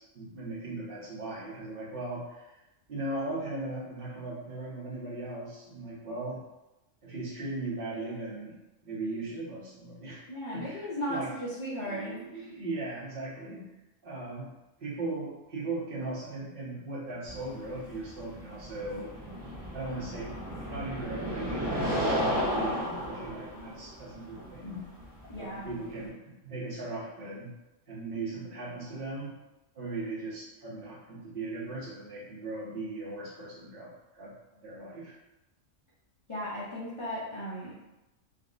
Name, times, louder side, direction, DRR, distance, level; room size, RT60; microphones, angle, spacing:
voice 1, 0.0-2.5 2.9-6.4 7.0-8.6 8.8-10.2 10.5-11.3 11.8-13.7 14.0-14.5 14.8-19.1 19.7-20.3 20.7-24.9 25.3-27.5 27.9-29.4 29.7-34.3 34.6-35.1, right 2 dB, 50° right, -6 dB, 1.0 m, -38 dB
voice 2, 10.3-12.4 25.3-25.7 36.3-37.8, equal, 45° left, -8 dB, 0.4 m, -36 dB
sound 1, 17.2-26.1, equal, 30° right, 0.5 m, -34 dB
3.6 x 2.2 x 2.4 m, 0.97 s
omnidirectional pair, 1.3 m